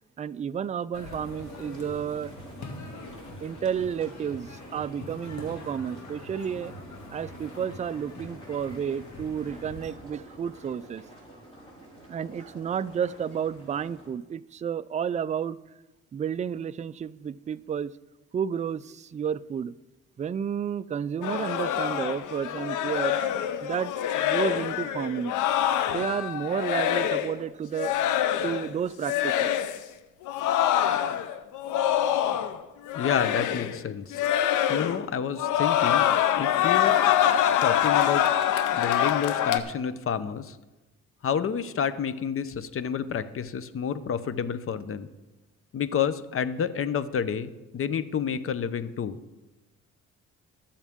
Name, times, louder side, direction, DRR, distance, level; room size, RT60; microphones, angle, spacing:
voice 1, 0.2-2.3 3.4-4.5 4.7-6.7 7.1-11.0 12.1-15.6 16.1-17.9 18.3-18.8 19.1-19.7 20.2-23.2 23.6-23.9 24.2-25.3 25.9-27.9 28.4-29.5, right 8 dB, 25° right, 15 dB, 0.3 m, -31 dB
sound 1, 0.9-9.9, left 2 dB, 60° left, 2.5 m, -43 dB
sound 2, 1.4-14.1, right 1 dB, 20° left, 4.7 m, -49 dB
sound 3, 21.2-27.4 27.7-28.7 29.0-29.8 30.2-32.6 32.9-33.8 34.1-35.1 35.3-39.6, left 10 dB, 80° left, 0.7 m, -25 dB
voice 2, 32.9-34.2 34.7-36.0 36.4-37.0 37.6-38.3 38.7-40.6 41.2-45.1 45.7-49.2, left 7 dB, 45° left, 14 dB, 0.8 m, -29 dB
21.5 x 7.3 x 3.6 m, 1.1 s
cardioid pair, 90°, 30 cm